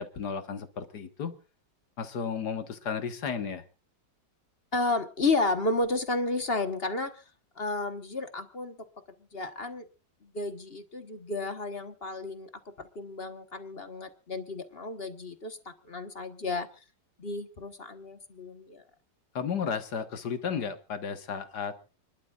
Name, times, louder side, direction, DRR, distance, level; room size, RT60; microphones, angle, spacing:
voice 1, 0.0-1.4 2.0-3.7 19.3-21.8, left 6 dB, 65° left, 9 dB, 2.0 m, -33 dB
voice 2, 4.7-7.2 7.6-8.9 9.3-9.9 10.2-12.5 12.8-16.7 17.2-18.8, left 2 dB, 35° left, 9 dB, 1.3 m, -32 dB
29.5 x 11.5 x 2.4 m, 0.33 s
omnidirectional pair, 1.9 m